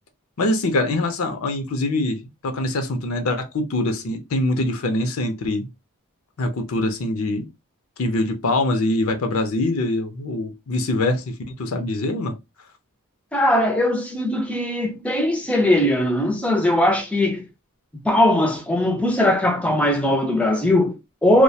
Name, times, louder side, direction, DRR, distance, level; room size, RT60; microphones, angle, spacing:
voice 1, 0.4-5.7 6.4-7.5 8.0-12.3, left 2 dB, 65° left, 0.5 m, -24 dB
voice 2, 13.3-17.5 18.0-21.4, left 1 dB, 5° left, 0.4 m, -20 dB
2.3 x 2.1 x 2.7 m
head